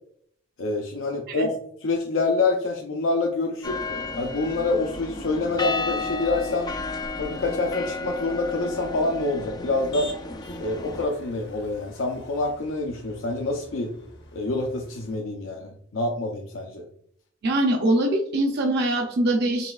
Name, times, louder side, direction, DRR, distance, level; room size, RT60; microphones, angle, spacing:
voice 1, 0.6-1.5 1.8-3.8 4.2-6.8 7.2-10.1 10.6-13.9 14.3-16.8, left 3 dB, 75° left, 0 dB, 0.6 m, -26 dB
sound 1, 3.6-11.1, left 3 dB, 20° left, 0.3 m, -33 dB
Motor vehicle (road), 9.6-15.1, left 2 dB, 55° left, 1.0 m, -45 dB
voice 2, 17.4-19.7, right 1 dB, 55° right, 1 dB, 0.6 m, -23 dB
5.3 x 3.2 x 2.3 m, 0.64 s
head